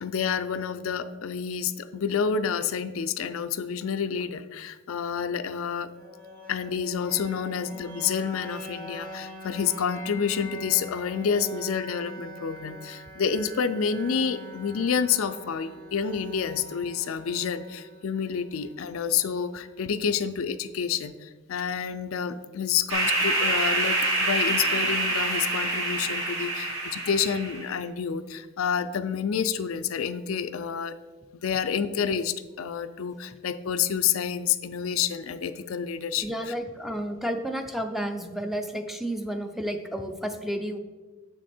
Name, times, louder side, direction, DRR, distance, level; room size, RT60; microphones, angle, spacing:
voice 1, 0.0-5.9 6.5-31.0 31.3-36.5, left 7 dB, 85° left, 11 dB, 0.4 m, -29 dB
sound 1, 5.9-19.9, left 1 dB, 45° right, 2.4 m, -43 dB
sound 2, 22.9-27.7, right 2 dB, 80° right, 1.7 m, -26 dB
voice 2, 36.2-40.8, equal, ahead, 6 dB, 0.5 m, -31 dB
7.2 x 6.2 x 4.3 m, 1.3 s
head